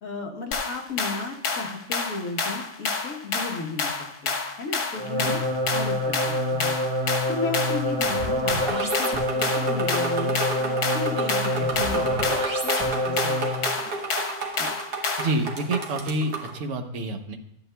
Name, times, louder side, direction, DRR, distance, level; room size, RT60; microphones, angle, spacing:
voice 1, 0.0-3.9 4.2-5.4 5.7-6.2 6.5-12.1 12.6-13.8 14.6-14.7 15.6-15.7, left 4 dB, 60° left, 2 dB, 1.4 m, -35 dB
sound 1, 0.5-15.4, left 4 dB, 85° left, 1.6 m, -29 dB
sound 2, 5.0-13.8, equal, 25° right, 0.7 m, -26 dB
sound 3, 8.7-16.6, right 3 dB, 90° right, 1.6 m, -32 dB
voice 2, 15.2-17.4, right 2 dB, 55° right, 5 dB, 1.1 m, -28 dB
12.5 x 8.6 x 2.2 m, 0.82 s
omnidirectional pair, 1.6 m